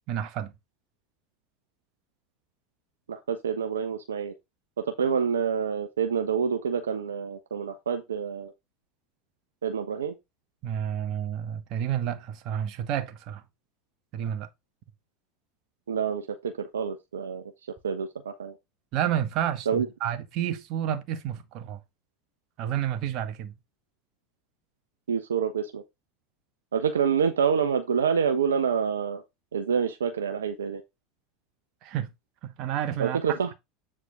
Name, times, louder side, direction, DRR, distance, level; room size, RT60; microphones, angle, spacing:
voice 1, 0.1-0.5 10.6-13.4 14.1-14.5 18.9-21.8 22.6-23.5 31.8-32.1 32.4-33.4, right 10 dB, 55° right, 1.7 m, -30 dB
voice 2, 3.1-4.3 4.8-8.5 9.6-10.1 15.9-17.5 17.8-18.5 19.7-19.9 25.1-25.8 26.7-29.2 29.5-30.8 33.0-33.5, right 7 dB, 80° right, 1.0 m, -27 dB
8.6 x 4.8 x 3.8 m
hypercardioid pair, 80°, 0 cm